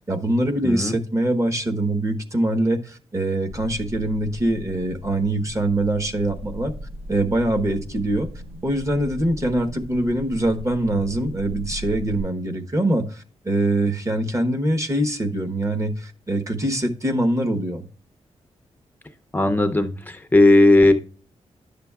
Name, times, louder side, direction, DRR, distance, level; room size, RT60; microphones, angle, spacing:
voice 1, 0.1-6.7 7.1-8.3 8.6-17.8, right 1 dB, 25° right, 9 dB, 1.0 m, -23 dB
voice 2, 0.6-1.0 19.3-20.9, left 2 dB, 15° left, 5 dB, 0.6 m, -16 dB
sound 1, 3.5-12.2, left 1 dB, 55° right, 1.0 m, -38 dB
10.5 x 6.8 x 2.3 m, 0.40 s
cardioid pair, 100°, 12 cm